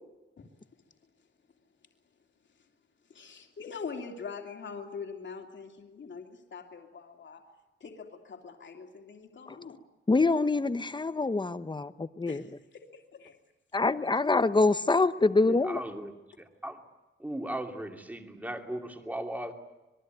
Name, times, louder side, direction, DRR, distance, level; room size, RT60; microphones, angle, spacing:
voice 1, 3.1-7.4 7.8-9.8 12.3-12.8 13.1-13.4, left 5 dB, 65° left, 3 dB, 2.9 m, -43 dB
voice 2, 10.1-12.4 13.7-15.8, left 3 dB, 20° left, 12 dB, 1.0 m, -25 dB
voice 3, 15.4-16.1 16.4-16.8 17.2-19.5, right 1 dB, 10° right, 4 dB, 2.7 m, -37 dB
26.5 x 22.0 x 9.3 m, 1.1 s
wide cardioid pair, 175°, 20 cm